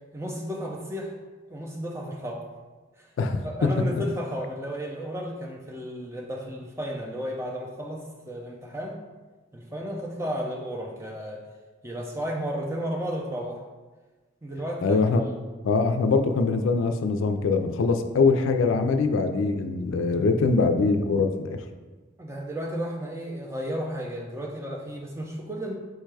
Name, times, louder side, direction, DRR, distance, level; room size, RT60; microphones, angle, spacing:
voice 1, 0.1-1.1 1.5-2.4 3.0-3.1 3.4-9.0 9.5-11.4 11.8-13.6 14.4-15.3 22.2-25.7, equal, 15° right, 0 dB, 0.4 m, -33 dB
voice 2, 3.2-3.8 14.8-15.2 15.6-21.6, left 4 dB, 80° left, 7 dB, 0.3 m, -23 dB
4.5 x 2.3 x 4.6 m, 1.3 s
head